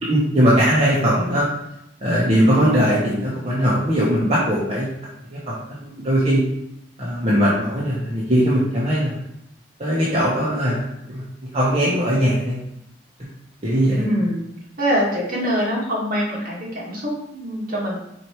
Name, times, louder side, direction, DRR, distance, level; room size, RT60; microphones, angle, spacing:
voice 1, 0.0-1.5 2.0-4.9 5.3-6.4 7.0-9.2 9.8-11.2 11.5-12.6 13.6-14.0, equal, 35° right, -7 dB, 1.3 m, -20 dB
voice 2, 1.0-1.4 14.0-14.4 14.8-18.0, equal, 50° right, -5 dB, 2.3 m, -24 dB
5.0 x 4.5 x 4.7 m, 0.81 s
head